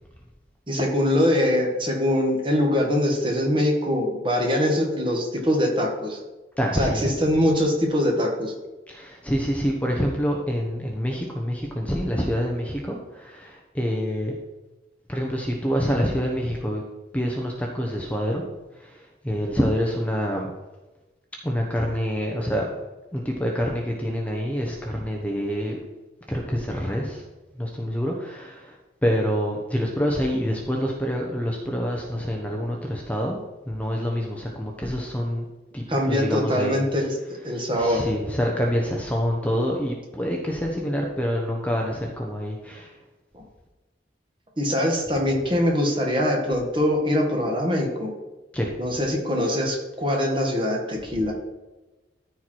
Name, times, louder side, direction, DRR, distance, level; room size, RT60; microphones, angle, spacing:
voice 1, 0.7-6.2 6.7-8.5 35.9-37.2 37.4-38.1 43.3-43.4 44.6-48.1 48.8-51.3, left 1 dB, 25° right, 0 dB, 1.8 m, -23 dB
voice 2, 6.6-7.1 8.9-14.3 15.1-16.8 17.1-18.4 18.7-20.5 21.4-22.7 23.1-25.8 26.3-27.2 27.6-28.8 29.0-35.5 35.7-36.8 37.7-42.9 48.5-48.8 51.2-51.3, equal, 10° left, 0 dB, 0.9 m, -26 dB
14.0 x 4.6 x 4.6 m, 1.1 s
head